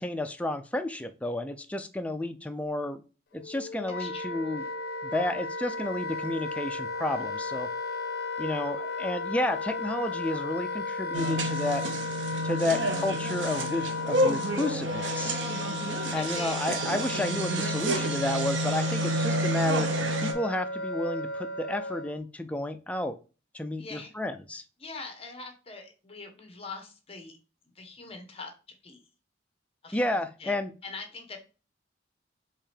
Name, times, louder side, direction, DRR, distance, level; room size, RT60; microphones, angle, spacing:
voice 1, 0.0-3.0 3.3-4.6 5.0-7.7 8.4-11.8 12.4-15.4 16.1-19.9 20.2-23.2 23.5-24.6 29.9-30.7, left 1 dB, 5° left, 7 dB, 0.4 m, -31 dB
Wind instrument woodwind instrument, 3.4-22.2, left 3 dB, 60° left, 0.6 m, -35 dB
voice 2, 4.0-4.5 12.5-12.8 13.2-13.4 16.1-16.6 23.8-24.1 24.8-27.4 27.7-28.5 28.8-29.0 29.8-30.6 30.8-31.4, left 3 dB, 30° left, 5 dB, 1.0 m, -43 dB
sound 1, 11.1-20.3, right 1 dB, 80° right, 0.7 m, -29 dB
4.7 x 3.1 x 3.3 m, 0.33 s
head